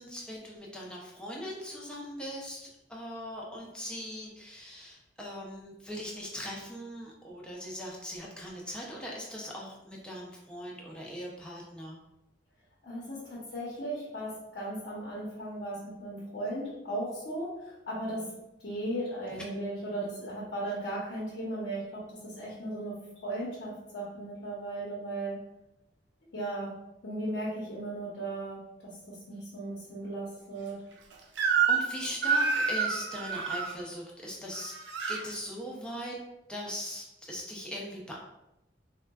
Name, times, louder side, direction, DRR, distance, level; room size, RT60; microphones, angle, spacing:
voice 1, 0.0-12.0 31.7-34.8 35.1-36.2 36.5-38.2, equal, 5° left, -3 dB, 0.5 m, -40 dB
voice 2, 12.8-18.2 18.6-22.9 23.2-25.4 26.3-26.7 27.0-28.9 29.3-30.8, right 1 dB, 75° left, -6 dB, 0.8 m, -36 dB
Crying sobbing / Screech, 31.4-31.9 32.2-33.7 34.5-35.2, right 5 dB, 75° right, 0.4 m, -27 dB
3.6 x 2.2 x 2.3 m, 0.91 s
head